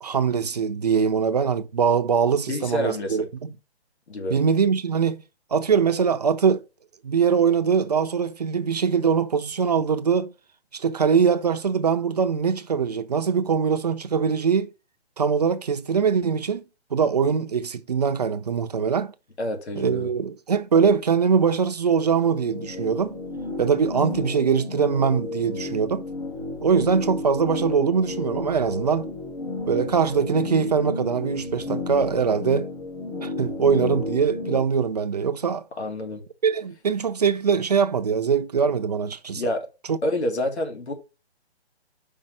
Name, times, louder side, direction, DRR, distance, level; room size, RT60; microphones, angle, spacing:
voice 1, 0.0-3.5 4.3-5.2 5.5-6.6 7.0-10.3 10.7-14.7 15.2-16.6 16.9-19.1 19.8-23.2 23.6-26.0 26.6-29.1 29.7-32.7 33.2-35.6 36.4-39.4 39.9-40.0, right 6 dB, 40° right, 0.6 m, -22 dB
voice 2, 2.5-3.3 4.1-4.3 19.4-20.1 35.8-36.2 39.3-39.7 40.0-40.9, left 1 dB, 75° left, 3.0 m, -28 dB
sound 1, 22.1-34.6, left 2 dB, 40° left, 3.3 m, -32 dB
5.5 x 5.0 x 6.0 m
hypercardioid pair, 160°, 33 cm